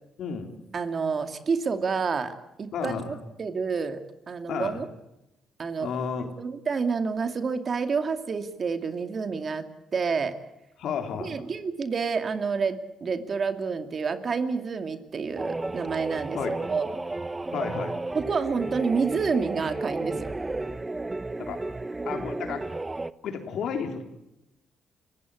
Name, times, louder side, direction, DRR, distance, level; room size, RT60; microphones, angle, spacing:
voice 1, 0.2-0.6 2.7-3.1 4.5-4.8 5.8-6.3 10.8-11.4 16.3-16.6 17.5-17.9 21.4-21.6 22.1-22.6 23.2-24.0, left 6 dB, 75° left, 5 dB, 3.8 m, -32 dB
voice 2, 0.7-4.0 4.3-4.9 5.6-5.9 6.4-9.7 9.9-10.3 11.2-16.4 16.7-16.9 18.1-20.3, right 5 dB, 45° right, 8 dB, 2.4 m, -28 dB
sound 1, 15.4-23.1, right 2 dB, 20° right, 0.9 m, -33 dB
29.5 x 16.0 x 8.6 m, 0.90 s
cardioid pair, 90°, 0 cm